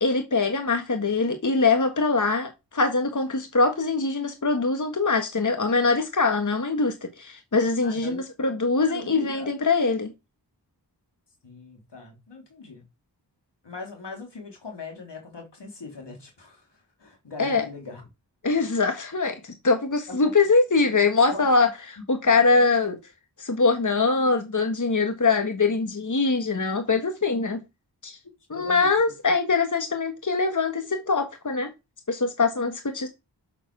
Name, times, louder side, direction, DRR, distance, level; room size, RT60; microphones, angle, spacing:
voice 1, 0.0-10.1 17.4-17.7 18.4-21.7 22.1-23.0 23.4-27.6 28.0-28.2 28.5-31.7 32.1-33.1, left 4 dB, 45° left, 1.5 m, -23 dB
voice 2, 7.8-8.2 8.9-9.5 11.4-12.8 13.6-18.0 20.1-20.3 21.3-21.5 28.5-28.9, left 3 dB, 80° left, 3.3 m, -40 dB
7.1 x 6.8 x 6.1 m
wide cardioid pair, 65°, 41 cm